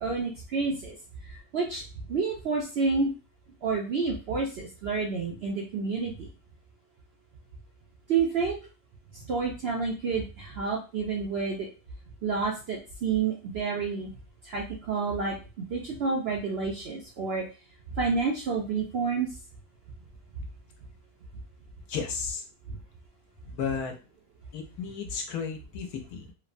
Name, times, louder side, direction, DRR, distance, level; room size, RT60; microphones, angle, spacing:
voice 1, 0.0-1.0 1.5-1.8 2.1-3.1 3.6-6.3 8.1-8.6 9.3-11.6 12.2-14.1 14.5-17.4 18.0-19.3, right 4 dB, 70° right, -1 dB, 0.6 m, -29 dB
voice 2, 21.9-22.4 23.5-23.9 24.5-26.3, left 6 dB, 85° left, 4 dB, 1.1 m, -33 dB
3.1 x 2.1 x 2.4 m, 0.32 s
omnidirectional pair, 1.6 m